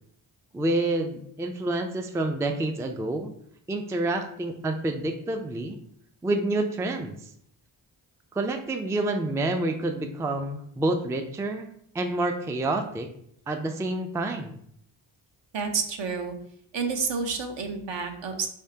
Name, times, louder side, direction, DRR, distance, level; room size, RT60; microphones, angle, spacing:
voice 1, 0.5-3.3 3.7-5.8 6.2-7.1 8.3-11.7 11.9-13.1 13.5-14.6, right 2 dB, 5° right, 5 dB, 0.3 m, -28 dB
voice 2, 15.5-16.3 16.7-18.5, right 5 dB, 65° right, 4 dB, 0.8 m, -29 dB
3.5 x 3.1 x 2.8 m, 0.68 s
cardioid pair, 50°, 48 cm